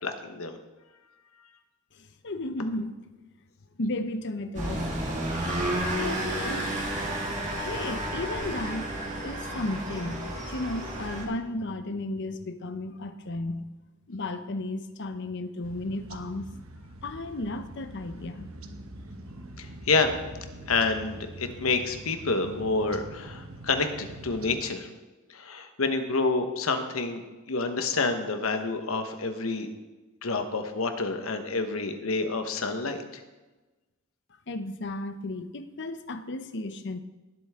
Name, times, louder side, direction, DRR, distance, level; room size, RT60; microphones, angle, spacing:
voice 1, 0.0-0.6 19.6-20.1 20.7-24.9 25.3-27.2 27.5-29.7 30.2-33.2, left 3 dB, 85° left, 7 dB, 1.2 m, -28 dB
voice 2, 2.0-2.9 3.8-4.9 5.8-6.8 7.6-8.9 9.2-13.7 14.1-16.5 17.0-18.5 34.5-37.0, left 2 dB, 55° left, 10 dB, 0.8 m, -34 dB
sound 1, 4.5-11.2, right 1 dB, 35° right, 2.2 m, -31 dB
sound 2, 15.6-24.6, right 1 dB, 80° right, 1.1 m, -44 dB
18.5 x 7.9 x 3.7 m, 1.1 s
head